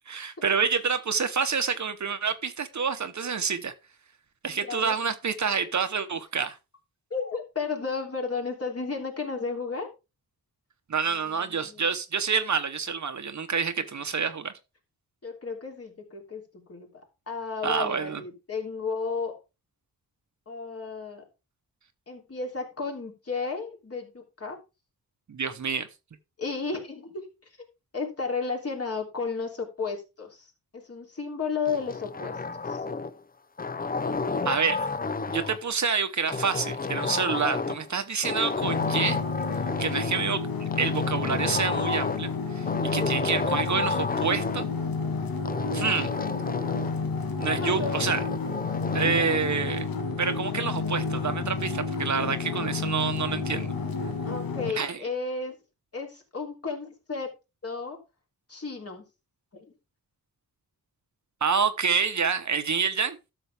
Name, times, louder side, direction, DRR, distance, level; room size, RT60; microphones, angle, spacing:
voice 1, 0.1-3.7 4.4-6.6 10.9-14.5 17.6-18.2 25.3-25.9 34.4-34.9 35.3-39.2 39.8-44.7 45.7-46.1 47.4-48.2 48.9-49.9 50.2-53.7 54.7-55.0 61.4-63.2, right 6 dB, 50° right, 1.0 m, -28 dB
voice 2, 4.5-5.0 7.1-9.9 11.1-11.9 15.2-19.4 20.5-21.3 22.1-24.6 26.4-27.5 27.9-30.5 30.7-32.4 32.7-32.8 43.0-43.1 47.5-48.1 54.2-55.5 55.9-57.3 57.6-58.0 58.5-59.0 59.5-59.7, left 4 dB, 40° left, 3.3 m, -33 dB
sound 1, 31.7-33.2 33.6-35.6 36.3-37.9 38.2-40.2 40.7-42.3 42.7-44.7 45.5-47.0 47.4-49.4, left 4 dB, 25° left, 0.6 m, -31 dB
sound 2, 38.6-54.7, left 4 dB, 70° left, 1.8 m, -30 dB
12.5 x 7.0 x 3.5 m
wide cardioid pair, 130°, 36 cm